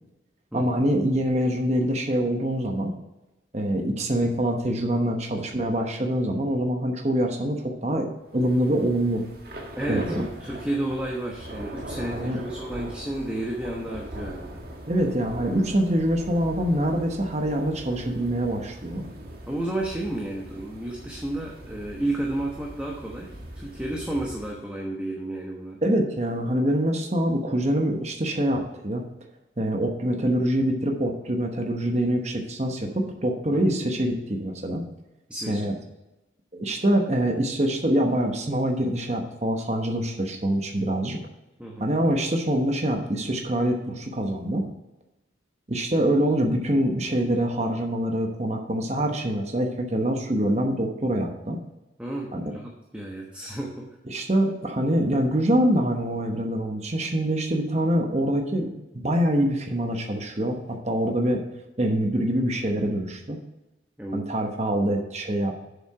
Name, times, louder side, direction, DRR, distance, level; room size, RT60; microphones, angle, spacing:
voice 1, 0.5-2.9 3.5-8.1 8.3-9.2 9.9-10.2 12.1-12.4 14.9-19.0 25.8-29.0 29.6-34.8 35.5-35.7 36.5-41.2 41.8-44.6 45.7-51.6 52.3-52.5 54.1-58.7 58.9-61.4 61.8-63.4 64.1-65.6, right 1 dB, 35° right, 3 dB, 1.0 m, -25 dB
Thunder / Rain, 8.3-24.6, right 1 dB, 50° right, 1.5 m, -41 dB
voice 2, 9.8-14.6 19.5-25.8 33.5-33.7 35.3-35.7 41.6-41.9 52.0-53.9 64.0-64.3, right 1 dB, 5° right, -2 dB, 1.0 m, -32 dB
7.4 x 7.1 x 4.7 m, 0.99 s
head